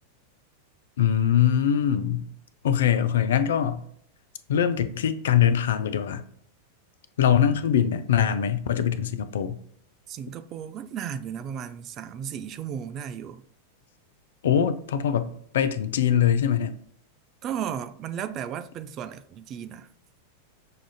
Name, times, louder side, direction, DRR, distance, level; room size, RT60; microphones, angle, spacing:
voice 1, 1.0-2.2 2.6-3.8 4.5-6.2 7.2-9.6 14.4-16.8, left 9 dB, 60° left, 0.3 m, -23 dB
voice 2, 10.1-13.4 17.4-19.9, right 8 dB, 35° right, 0.3 m, -34 dB
6.3 x 2.4 x 2.3 m
figure-of-eight pair, 90°, 0 cm